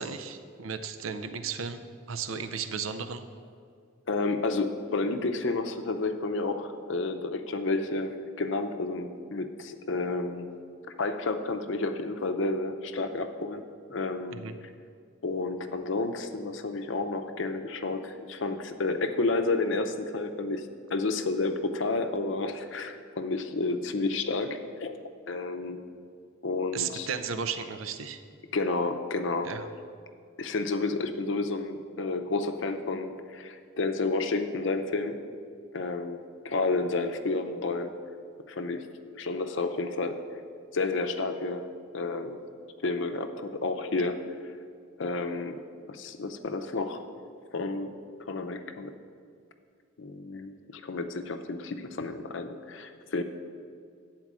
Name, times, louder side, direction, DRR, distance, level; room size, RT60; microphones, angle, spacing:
voice 1, 0.0-1.8 2.1-3.3 14.3-14.6 26.7-28.2 29.4-29.7, right 6 dB, 80° right, 10 dB, 0.5 m, -34 dB
voice 2, 4.1-10.5 11.0-13.6 13.9-14.4 15.2-24.9 25.3-25.8 26.4-27.1 28.5-29.5 30.4-35.2 35.7-38.0 38.5-38.9 39.1-40.2 40.7-42.4 42.8-44.3 45.0-45.6 45.9-47.0 47.5-47.9 48.3-48.9 50.0-53.2, left 3 dB, 65° left, 7 dB, 0.6 m, -31 dB
9.5 x 4.5 x 7.3 m, 2.2 s
head